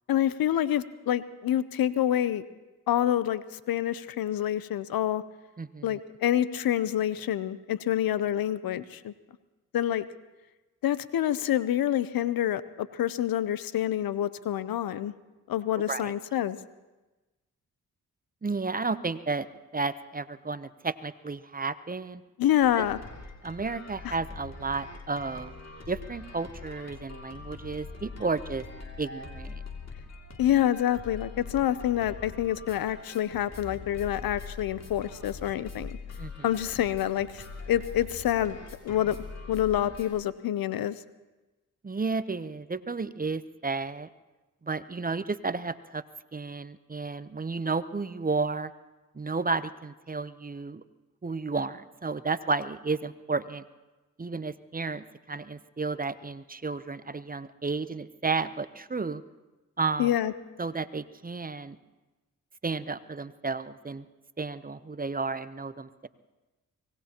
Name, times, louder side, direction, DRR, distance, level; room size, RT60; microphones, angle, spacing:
voice 1, 0.1-2.4 2.9-5.2 5.8-9.1 9.7-10.0 10.8-15.1 15.5-16.6 22.4-23.0 24.0-24.1 30.4-36.0 36.4-38.6 38.8-39.2 39.5-41.0 60.0-60.3, left 11 dB, 75° left, 16 dB, 0.7 m, -27 dB
voice 2, 5.6-6.0 15.9-16.1 18.4-19.5 19.7-22.2 22.8-22.9 23.4-25.5 25.9-28.6 29.0-29.6 36.2-36.3 41.8-44.1 44.6-46.0 46.3-48.7 49.1-50.8 51.2-53.6 54.2-59.2 59.8-60.1 60.6-61.8 62.6-64.1 64.4-66.1, right 4 dB, 25° right, 14 dB, 0.8 m, -32 dB
sound 1, 22.6-40.1, left 4 dB, 45° left, 2.6 m, -43 dB
24.0 x 19.0 x 2.9 m, 1.1 s
supercardioid pair, 50°, 36 cm